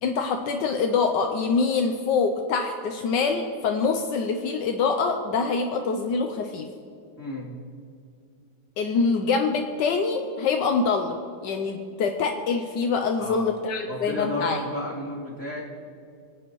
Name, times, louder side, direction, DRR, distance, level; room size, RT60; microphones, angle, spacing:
voice 1, 0.0-6.7 8.8-11.1 11.4-14.6, left 4 dB, 75° left, 4 dB, 1.3 m, -25 dB
voice 2, 7.2-7.5 13.2-13.5 13.9-15.6, left 1 dB, 10° left, -7 dB, 2.6 m, -32 dB
21.5 x 8.8 x 3.0 m, 2.4 s
omnidirectional pair, 2.0 m